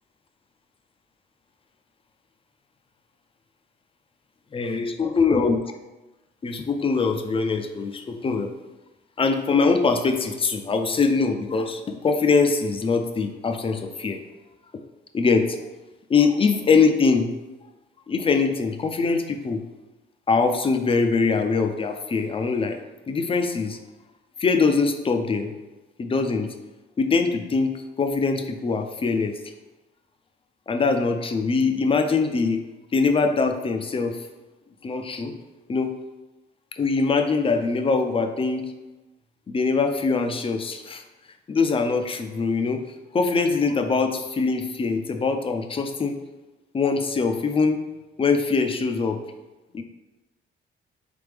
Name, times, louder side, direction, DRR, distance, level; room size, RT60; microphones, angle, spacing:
voice 1, 4.5-5.6 6.4-8.5 9.2-14.2 15.1-15.6 16.1-17.3 18.1-19.6 20.3-22.8 23.1-23.8 24.4-25.5 26.0-26.5 27.0-29.4 30.7-32.6 32.9-34.2 34.8-35.3 35.7-35.9 36.7-38.6 39.5-41.0 41.5-42.8 43.1-46.2 46.7-47.8 48.2-49.2 49.7-49.8, left 4 dB, 30° left, 6 dB, 0.4 m, -23 dB
3.5 x 3.4 x 3.3 m, 1.1 s
cardioid pair, 90°, 20 cm